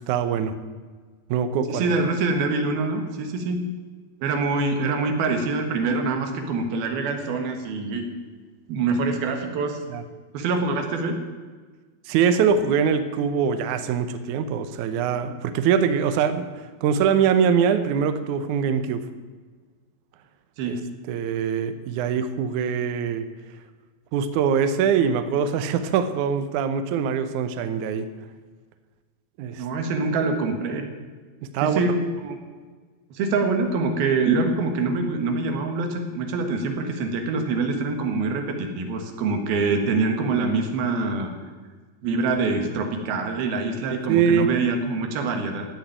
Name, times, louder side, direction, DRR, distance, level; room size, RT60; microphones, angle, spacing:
voice 1, 0.1-0.5 1.3-2.0 9.9-10.0 12.1-19.1 20.7-20.8 21.1-23.3 24.1-28.1 29.4-29.6 31.5-31.8 44.1-44.5, right 7 dB, 70° right, 10 dB, 2.0 m, -23 dB
voice 2, 1.7-3.6 4.2-8.1 8.7-9.8 10.3-11.2 20.6-20.8 29.6-30.9 31.6-32.4 33.1-41.3 42.0-45.7, right 3 dB, 85° right, 5 dB, 3.5 m, -25 dB
16.0 x 7.4 x 9.2 m, 1.4 s
omnidirectional pair, 4.2 m